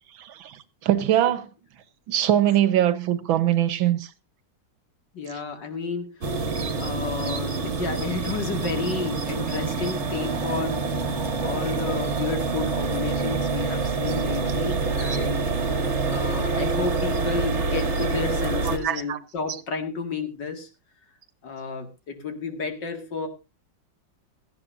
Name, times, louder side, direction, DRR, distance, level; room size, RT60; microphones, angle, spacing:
voice 1, 0.2-0.6 0.8-1.5 2.1-4.1 18.8-19.2, right 12 dB, 85° right, 1.8 m, -22 dB
voice 2, 5.1-6.1 6.8-10.9 11.4-15.5 15.8-20.7 21.4-23.3, left 4 dB, 65° left, 2.7 m, -31 dB
sound 1, 6.2-18.8, right 4 dB, 40° right, 1.8 m, -26 dB
17.0 x 14.0 x 2.6 m
omnidirectional pair, 2.1 m